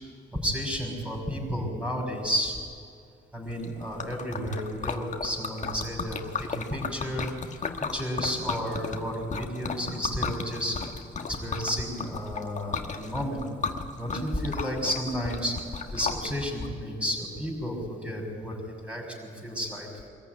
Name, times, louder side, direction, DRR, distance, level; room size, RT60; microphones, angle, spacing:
voice 1, 0.4-2.6 3.3-7.3 7.9-10.8 11.3-13.4 14.0-15.5 15.9-19.9, equal, 5° right, 0 dB, 6.1 m, -32 dB
Liquid, 3.5-16.7, left 5 dB, 40° left, 1.6 m, -35 dB
23.5 x 14.5 x 9.4 m, 2.3 s
cardioid pair, 90°, 20 cm